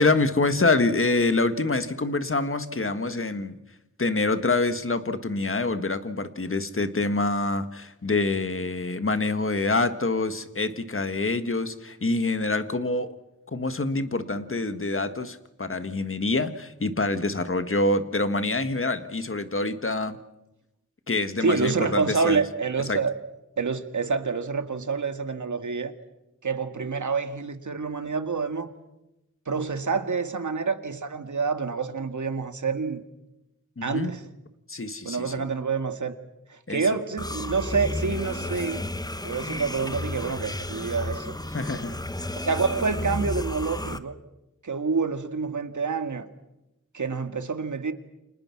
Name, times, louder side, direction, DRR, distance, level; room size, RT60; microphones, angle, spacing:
voice 1, 0.0-3.6 4.0-13.2 13.5-20.2 21.1-22.4 22.9-23.0 33.8-34.1 34.7-35.4 36.7-36.9 41.5-42.0, left 3 dB, 45° left, 10 dB, 1.7 m, -26 dB
voice 2, 21.4-23.1 23.6-25.9 26.4-28.7 29.5-33.0 33.8-34.2 35.0-36.2 36.5-38.8 39.2-41.4 42.4-44.1 44.6-46.3 46.9-47.9, right 4 dB, 70° right, 8 dB, 2.1 m, -27 dB
sound 1, 37.2-44.0, left 1 dB, 10° left, 1.1 m, -32 dB
29.5 x 26.0 x 6.1 m, 0.93 s
wide cardioid pair, 75°, 31 cm